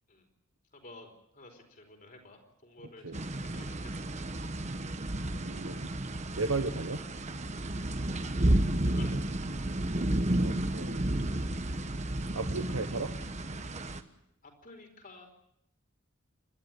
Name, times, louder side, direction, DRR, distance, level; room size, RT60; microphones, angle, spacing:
voice 1, 0.7-3.9 8.8-9.3 14.6-15.3, left 2 dB, 40° left, 3 dB, 4.6 m, -51 dB
voice 2, 2.8-3.2 5.4-5.9 6.4-7.0 10.4-11.1 12.3-13.1, right 3 dB, 80° right, 7 dB, 1.3 m, -35 dB
sound 1, 3.1-14.0, right 1 dB, 35° right, 1.1 m, -32 dB
29.0 x 12.5 x 9.1 m, 0.80 s
head